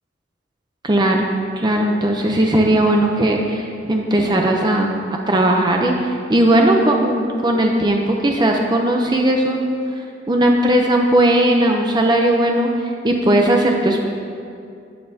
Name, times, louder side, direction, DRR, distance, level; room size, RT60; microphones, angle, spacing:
voice 1, 0.8-1.3 1.6-4.9 5.3-9.8 10.3-14.0, right 1 dB, 20° right, 1 dB, 0.6 m, -17 dB
13.5 x 9.9 x 2.8 m, 2.4 s
head